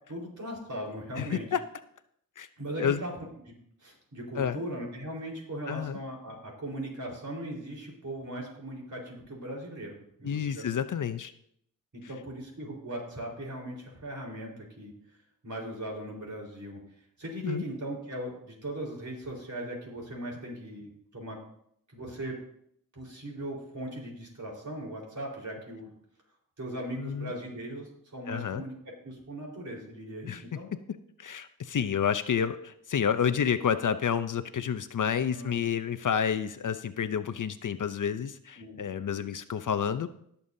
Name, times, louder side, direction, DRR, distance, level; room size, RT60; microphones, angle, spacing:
voice 1, 0.1-1.5 2.6-3.1 3.5-3.6 3.8-10.7 11.9-14.9 15.4-16.8 17.2-21.4 21.9-22.4 22.9-25.9 26.6-28.7 29.0-30.7 35.3-35.7 38.6-38.8, right 1 dB, 55° right, -2 dB, 4.2 m, -39 dB
voice 2, 1.2-1.6 2.4-2.5 2.8-3.0 4.4-4.6 5.7-6.0 10.2-11.3 17.4-17.6 27.0-27.3 28.3-28.6 30.2-30.4 31.2-40.1, left 7 dB, 60° left, 12 dB, 0.6 m, -29 dB
20.0 x 7.0 x 2.7 m, 0.70 s
cardioid pair, 70°, 36 cm